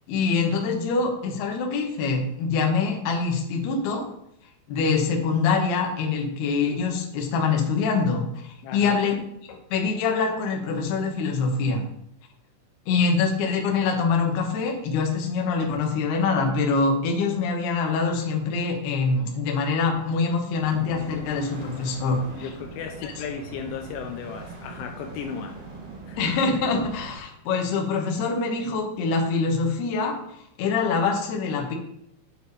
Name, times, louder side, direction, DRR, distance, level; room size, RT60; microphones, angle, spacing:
voice 1, 0.1-4.1 4.7-9.1 9.5-11.8 12.9-22.5 23.0-23.1 26.2-31.8, left 4 dB, 65° left, 1 dB, 3.0 m, -24 dB
voice 2, 8.6-9.1 22.4-25.6 26.1-26.2, left 7 dB, 80° left, 3 dB, 3.2 m, -35 dB
sound 1, 20.5-27.2, right 3 dB, 75° right, 1.4 m, -41 dB
8.4 x 7.6 x 4.1 m, 0.75 s
omnidirectional pair, 5.6 m